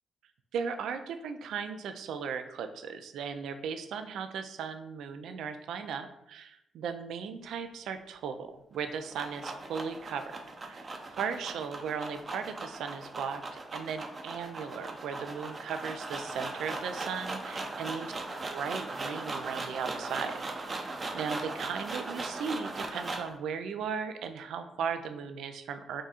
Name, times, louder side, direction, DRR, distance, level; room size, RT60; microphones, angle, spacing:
voice 1, 0.5-10.2 10.6-13.4 13.7-18.1 18.5-26.0, right 6 dB, 80° right, 8 dB, 0.4 m, -37 dB
sound 1, 8.7-23.4, right 2 dB, 40° right, 0.7 m, -39 dB
3.7 x 2.3 x 4.1 m, 0.83 s
supercardioid pair, 55°, 0 cm